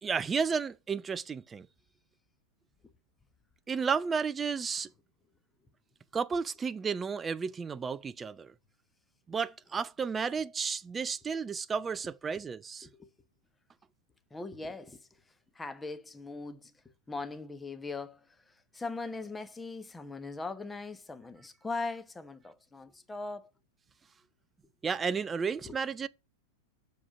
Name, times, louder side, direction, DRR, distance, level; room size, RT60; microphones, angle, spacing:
voice 1, 0.0-1.7 3.7-4.9 6.1-8.5 9.3-12.9 24.8-26.1, right 5 dB, 20° right, 0.3 m, -32 dB
voice 2, 14.3-23.5 25.6-25.7, left 3 dB, 10° left, 1.1 m, -40 dB
7.0 x 4.9 x 6.3 m
figure-of-eight pair, 90°, 0 cm